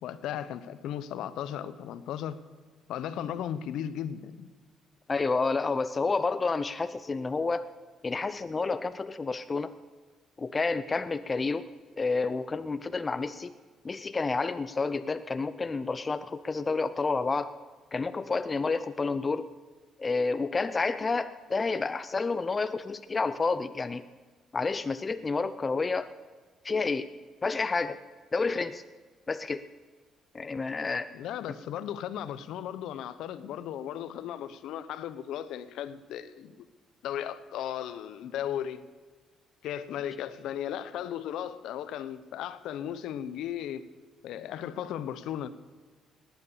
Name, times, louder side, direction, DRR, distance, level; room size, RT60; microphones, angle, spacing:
voice 1, 0.0-2.4 2.9-4.5 31.1-36.7 37.0-38.8 39.6-43.8 44.2-45.5, left 10 dB, 80° left, 0.8 m, -36 dB
voice 2, 5.1-7.7 8.0-9.7 10.4-11.7 12.0-13.5 13.8-17.5 17.9-19.5 20.0-24.0 24.5-26.1 26.6-27.1 27.4-28.0 28.3-28.8 29.3-29.7 30.3-31.1, left 4 dB, 25° left, 0.5 m, -29 dB
18.5 x 9.5 x 6.9 m
cardioid pair, 110°, 0 cm